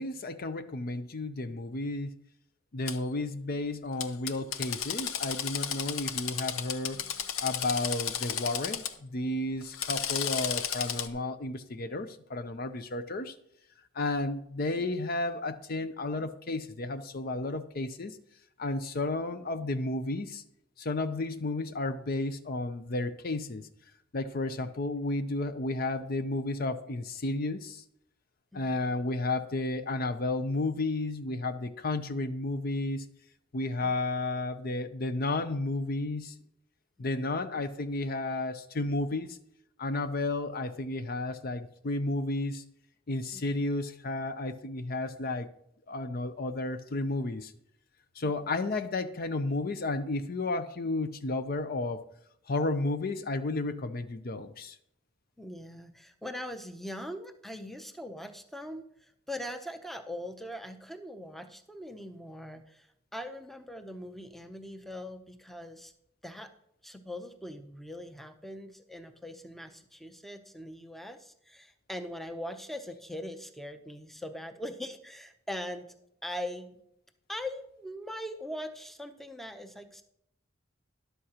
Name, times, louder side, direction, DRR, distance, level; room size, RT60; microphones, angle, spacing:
voice 1, 0.0-2.2 2.7-7.0 7.4-13.4 13.9-18.2 18.6-20.4 20.8-23.7 24.1-27.8 28.5-33.0 33.5-36.3 37.0-39.4 39.8-42.6 43.1-45.5 45.9-47.5 48.2-52.0 52.5-54.8, left 2 dB, 45° left, 10 dB, 0.5 m, -32 dB
Drill, 2.9-3.0 4.0-8.9 9.6-11.1, left 8 dB, 85° left, 0.8 m, -33 dB
voice 2, 55.4-65.9 66.2-66.5 66.8-76.0 76.2-76.8 77.3-80.0, left 1 dB, ahead, 6 dB, 0.6 m, -41 dB
12.5 x 11.5 x 2.9 m, 0.73 s
head